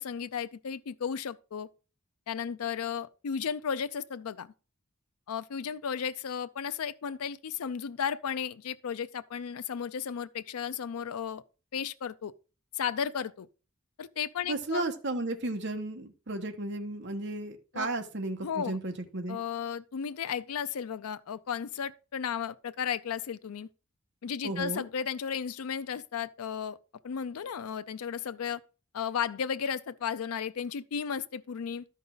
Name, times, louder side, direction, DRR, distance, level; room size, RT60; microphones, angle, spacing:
voice 1, 0.0-1.7 2.3-4.5 5.3-11.4 11.7-12.3 12.7-13.5 14.0-14.8 17.7-17.9 18.4-18.8 19.3-23.7 24.2-26.8 27.0-28.6 28.9-31.9, left 7 dB, 90° left, 0.4 m, -34 dB
voice 2, 14.5-19.4 24.4-24.8, right 2 dB, 55° right, 1.2 m, -34 dB
12.5 x 5.4 x 3.9 m
head